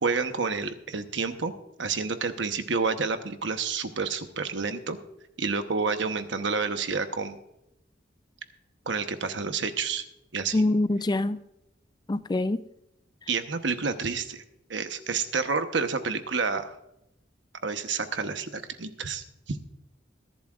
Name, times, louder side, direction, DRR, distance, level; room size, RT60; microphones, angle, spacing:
voice 1, 0.0-1.5 1.8-5.0 5.4-7.4 8.9-10.0 10.3-10.6 13.3-14.4 14.7-16.7 17.6-19.6, right 4 dB, 75° right, 8 dB, 1.0 m, -29 dB
voice 2, 10.5-11.4 12.1-12.6, left 2 dB, 25° left, 13 dB, 0.4 m, -25 dB
22.0 x 11.0 x 2.4 m, 0.85 s
head